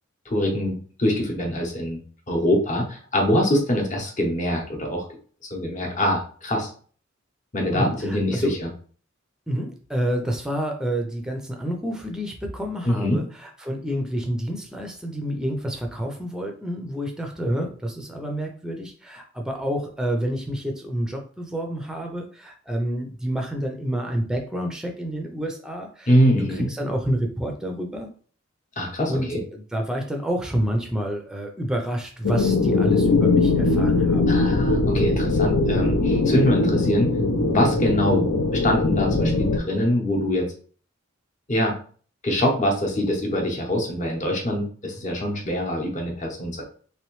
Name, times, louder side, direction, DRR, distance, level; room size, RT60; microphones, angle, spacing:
voice 1, 0.3-2.0 2.3-5.0 5.5-6.7 7.5-8.7 12.8-13.2 26.1-26.7 28.8-29.4 34.3-37.1 37.5-40.5 41.5-41.7 42.2-46.6, equal, 35° left, 0 dB, 0.9 m, -23 dB
voice 2, 7.7-8.5 9.5-28.1 29.1-34.2, equal, 5° right, 2 dB, 0.5 m, -29 dB
sound 1, 32.2-39.6, left 3 dB, 65° left, 0.5 m, -21 dB
3.4 x 3.0 x 3.1 m, 0.43 s
head